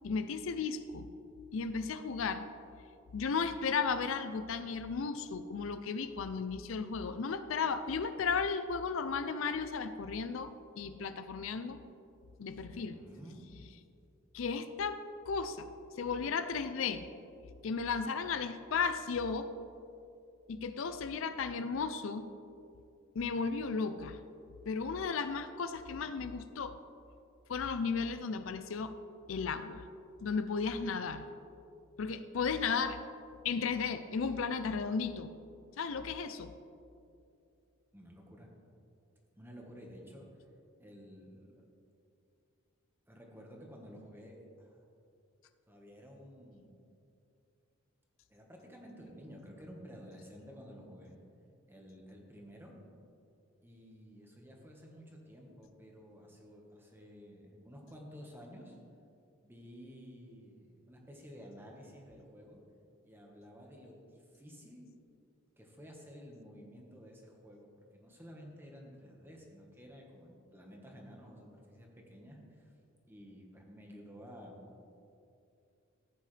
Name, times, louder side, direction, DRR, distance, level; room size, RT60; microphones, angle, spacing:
voice 1, 0.0-1.1 1.5-2.4 3.1-11.8 12.4-13.0 14.3-15.0 15.3-15.7 16.0-17.1 17.6-19.5 20.5-22.3 23.1-24.2 24.7-26.8 27.5-29.0 29.3-29.8 30.2-31.2 32.0-33.0 33.4-35.3 35.8-36.5, left 5 dB, 70° left, 10 dB, 0.5 m, -34 dB
voice 2, 12.5-13.4 37.9-38.5 39.4-40.3 40.8-41.6 43.1-44.8 45.7-46.8 48.3-51.2 51.7-52.7 53.6-58.8 59.4-62.6 63.0-64.9 65.6-72.7 73.1-74.7, equal, 10° right, 0 dB, 1.4 m, -52 dB
14.5 x 8.3 x 3.3 m, 2.6 s
head